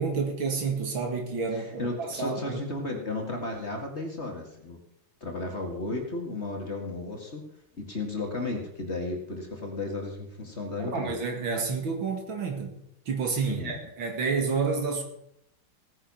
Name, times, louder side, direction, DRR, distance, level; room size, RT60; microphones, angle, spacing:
voice 1, 0.0-2.6 10.9-12.8 13.1-15.0, right 5 dB, 65° right, 4 dB, 2.8 m, -29 dB
voice 2, 1.5-4.8 5.2-7.4 7.8-11.2 13.5-13.8, left 2 dB, 30° left, 2 dB, 2.1 m, -34 dB
17.0 x 9.7 x 5.5 m, 0.77 s
omnidirectional pair, 2.3 m